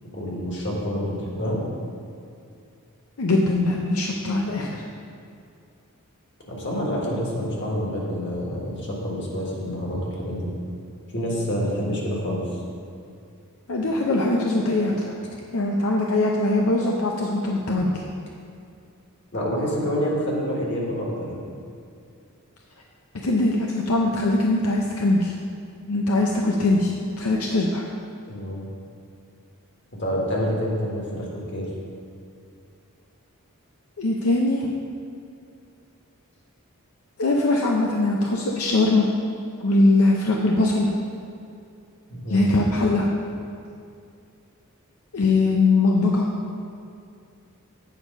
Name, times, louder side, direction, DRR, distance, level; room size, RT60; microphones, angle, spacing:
voice 1, 0.0-1.6 6.5-10.5 11.1-12.6 19.3-21.4 28.3-28.7 30.0-31.7 42.1-42.5, equal, 55° left, -3 dB, 1.7 m, -27 dB
voice 2, 3.2-4.8 13.7-15.1 15.5-18.0 23.2-25.3 25.9-27.8 34.0-34.7 37.2-39.1 39.6-40.9 42.3-43.1 45.1-46.3, left 2 dB, 80° left, -1 dB, 0.7 m, -21 dB
8.8 x 4.7 x 5.4 m, 2.5 s
head